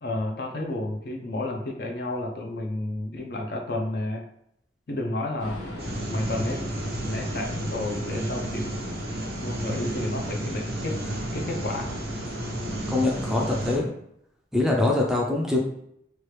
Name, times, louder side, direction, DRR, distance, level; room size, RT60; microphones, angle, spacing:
voice 1, 0.0-4.2 4.9-5.6 6.1-6.7 7.1-8.8 9.4-11.0 11.3-11.9, left 2 dB, 60° left, 2 dB, 0.5 m, -31 dB
sound 1, 5.4-13.8, left 1 dB, 80° left, 1.0 m, -36 dB
sound 2, 5.8-13.8, right 1 dB, 60° right, 0.5 m, -33 dB
voice 2, 12.9-13.9 14.5-15.6, left 2 dB, 5° right, -1 dB, 0.4 m, -23 dB
3.0 x 2.3 x 3.1 m, 0.75 s
head